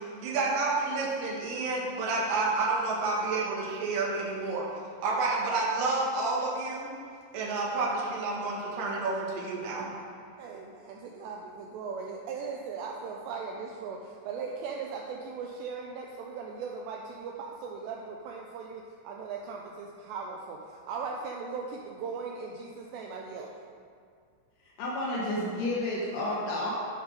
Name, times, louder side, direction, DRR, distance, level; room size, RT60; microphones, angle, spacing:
voice 1, 0.0-4.7 5.0-6.9 7.3-9.9, right 3 dB, 60° right, -4 dB, 2.6 m, -29 dB
voice 2, 10.4-23.5, right 5 dB, 90° right, -1 dB, 2.4 m, -38 dB
voice 3, 24.8-26.7, left 1 dB, 75° left, -5 dB, 3.7 m, -30 dB
13.0 x 5.4 x 5.1 m, 2.1 s
omnidirectional pair, 5.7 m